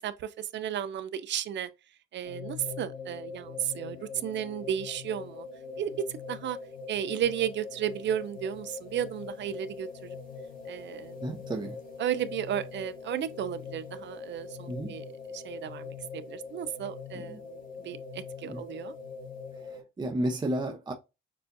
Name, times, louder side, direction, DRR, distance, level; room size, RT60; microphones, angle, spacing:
voice 1, 0.0-1.7 2.1-5.5 5.8-6.6 6.9-10.2 10.7-11.2 12.0-15.0 15.3-18.9, right 10 dB, 65° right, 0.6 m, -34 dB
sound 1, 2.2-19.8, left 5 dB, 45° left, 2.0 m, -43 dB
voice 2, 11.2-11.8 14.7-15.0 17.1-17.4 17.8-18.0 18.4-18.6 19.6-20.9, right 1 dB, 20° right, 0.8 m, -33 dB
6.7 x 2.5 x 2.6 m
cardioid pair, 90°, 20 cm